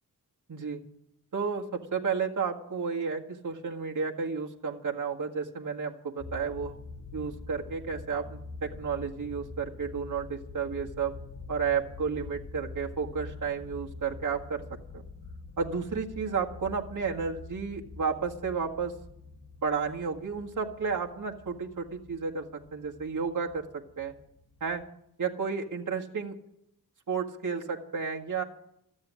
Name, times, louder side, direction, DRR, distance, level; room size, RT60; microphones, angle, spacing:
voice 1, 0.5-0.8 1.3-6.7 7.1-11.1 11.5-14.6 14.9-15.1 15.6-18.9 19.6-24.1 24.6-24.8 25.2-26.4 27.1-28.4, right 5 dB, 50° right, 0 dB, 1.8 m, -32 dB
sound 1, 6.2-24.9, left 3 dB, 45° left, 1.8 m, -45 dB
14.0 x 8.9 x 10.0 m, 0.77 s
wide cardioid pair, 95°, 39 cm